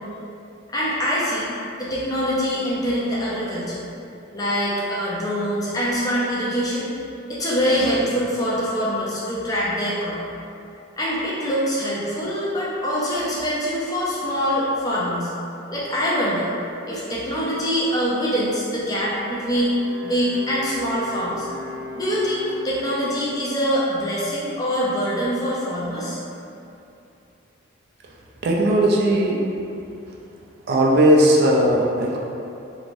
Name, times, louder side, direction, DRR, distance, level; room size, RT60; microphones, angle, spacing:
voice 1, 0.7-1.5 1.8-3.8 4.3-6.9 7.3-10.2 11.0-15.3 15.7-16.5 16.8-21.5 21.9-26.2, equal, 20° left, -7 dB, 0.5 m, -24 dB
Wind instrument woodwind instrument, 19.6-23.4, left 1 dB, 75° right, 1.0 m, -37 dB
voice 2, 28.4-29.4 30.7-32.2, right 1 dB, 50° right, -2 dB, 0.3 m, -17 dB
3.1 x 2.7 x 2.5 m, 2.7 s
head